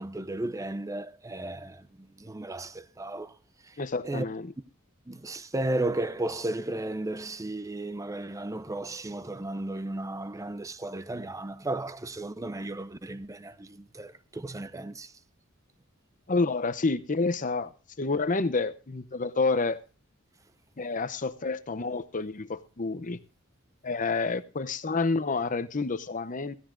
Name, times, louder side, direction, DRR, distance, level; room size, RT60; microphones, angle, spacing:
voice 1, 0.0-3.4 3.6-4.3 5.1-15.2, right 2 dB, 15° right, 0.6 m, -34 dB
voice 2, 3.8-4.4 16.3-17.7 18.0-19.8 20.8-23.2 23.8-26.5, left 3 dB, 40° left, 0.8 m, -29 dB
16.5 x 15.5 x 2.5 m
head